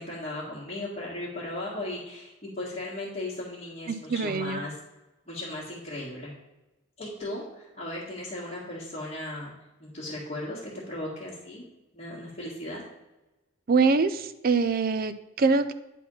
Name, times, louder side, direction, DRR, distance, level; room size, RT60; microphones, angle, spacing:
voice 1, 0.0-4.8 5.3-6.3 7.0-9.5 9.8-11.7 11.9-12.8, left 1 dB, 30° left, -10 dB, 2.0 m, -36 dB
voice 2, 3.9-4.6 13.7-15.7, right 4 dB, 45° right, 12 dB, 0.5 m, -24 dB
9.9 x 4.2 x 5.6 m, 1.0 s
head